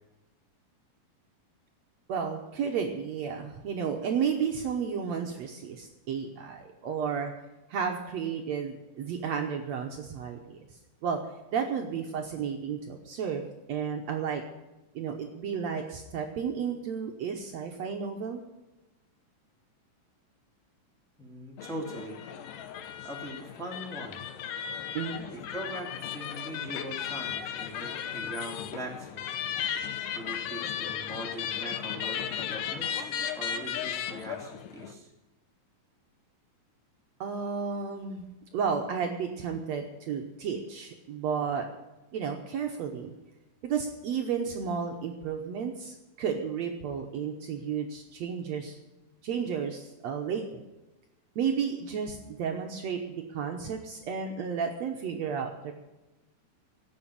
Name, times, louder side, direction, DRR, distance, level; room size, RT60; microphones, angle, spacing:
voice 1, 2.1-7.3 7.7-10.6 11.0-11.2 11.5-14.4 15.0-18.4 24.9-25.2 37.2-38.3 38.5-41.7 42.1-43.1 43.6-48.8 49.2-50.6 51.4-55.7, right 6 dB, 65° right, 3 dB, 1.9 m, -32 dB
voice 2, 21.2-22.3 23.0-24.3 25.3-29.3 29.7-35.1, right 1 dB, ahead, -1 dB, 1.6 m, -41 dB
sound 1, 21.6-34.9, left 9 dB, 80° left, 2.5 m, -35 dB
16.0 x 6.4 x 9.8 m, 1.0 s
omnidirectional pair, 3.8 m